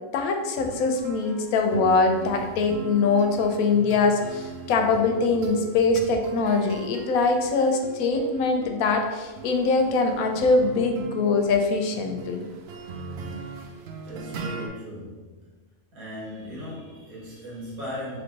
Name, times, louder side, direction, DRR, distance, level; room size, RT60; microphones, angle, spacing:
voice 1, 0.1-12.5, left 3 dB, 90° left, 4 dB, 1.0 m, -23 dB
sound 1, 0.6-14.7, right 4 dB, 65° right, 0.6 m, -39 dB
voice 2, 14.0-15.5 15.9-18.2, equal, 85° right, -7 dB, 2.0 m, -38 dB
3.4 x 3.3 x 3.9 m, 1.3 s
omnidirectional pair, 1.5 m